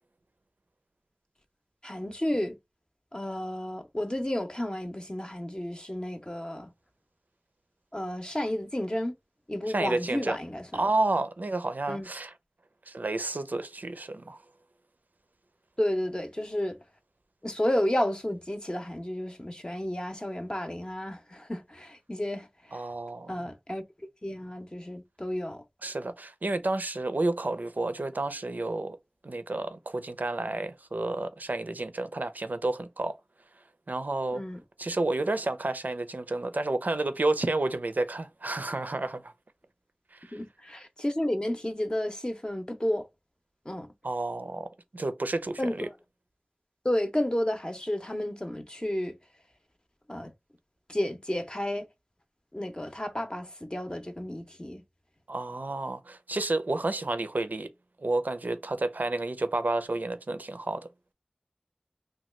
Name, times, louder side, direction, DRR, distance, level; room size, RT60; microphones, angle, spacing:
voice 1, 1.8-2.6 3.1-6.7 7.9-9.1 9.5-10.8 11.9-12.1 15.8-16.8 17.4-22.8 23.3-23.8 24.2-25.6 34.3-34.6 40.3-43.1 43.7-43.9 45.6-45.9 46.8-49.2 50.1-50.3 50.9-51.9 52.5-54.8, left 1 dB, 30° left, 0.6 m, -31 dB
voice 2, 9.7-10.4 10.7-12.3 12.9-14.4 22.7-23.4 25.8-29.0 29.2-33.2 33.9-34.4 34.8-39.3 40.1-40.3 44.0-45.9 55.3-57.7 58.0-60.9, right 2 dB, 85° right, 0.4 m, -30 dB
3.0 x 2.2 x 3.1 m
wide cardioid pair, 40°, 3 cm